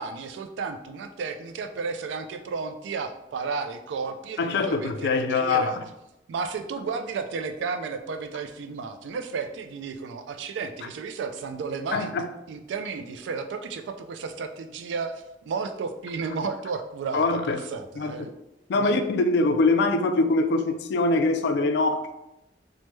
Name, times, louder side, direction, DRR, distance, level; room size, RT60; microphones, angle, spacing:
voice 1, 0.0-5.7 6.3-12.1 12.5-18.3 18.7-18.9, right 5 dB, 85° right, 0.3 m, -33 dB
voice 2, 4.4-5.9 11.9-12.3 17.1-17.6 18.0-18.3 18.7-22.1, left 3 dB, 65° left, 0.3 m, -23 dB
3.2 x 2.1 x 3.0 m
head